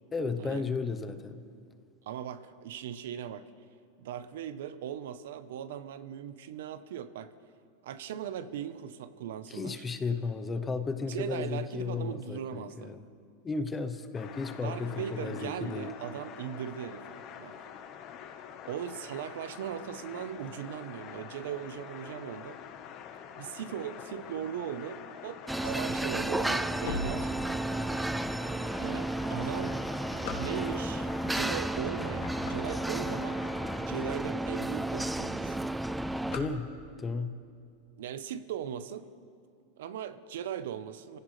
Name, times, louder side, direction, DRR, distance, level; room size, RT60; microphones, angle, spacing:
voice 1, 0.1-1.5 9.5-13.0 13.4-15.9 36.3-36.7 37.0-37.4, left 4 dB, 15° left, 10 dB, 0.7 m, -34 dB
voice 2, 2.0-3.5 4.0-7.3 7.8-9.8 11.0-12.9 14.6-17.6 18.7-22.6 23.4-27.6 28.8-29.8 30.4-33.5 33.9-35.6 38.0-39.1 39.8-41.2, right 9 dB, 80° right, 12 dB, 0.8 m, -39 dB
sound 1, 14.1-33.9, left 8 dB, 40° left, 1.1 m, -46 dB
sound 2, 25.5-36.4, right 1 dB, 5° right, 0.3 m, -32 dB
sound 3, 26.1-27.9 28.5-28.6 29.3-31.0 31.6-31.8 32.1-33.6 34.1-34.2 34.5-34.6 34.9-35.2 35.5-37.1, left 4 dB, 65° left, 2.2 m, -41 dB
27.0 x 16.5 x 3.3 m, 2.2 s
supercardioid pair, 155°, 0 cm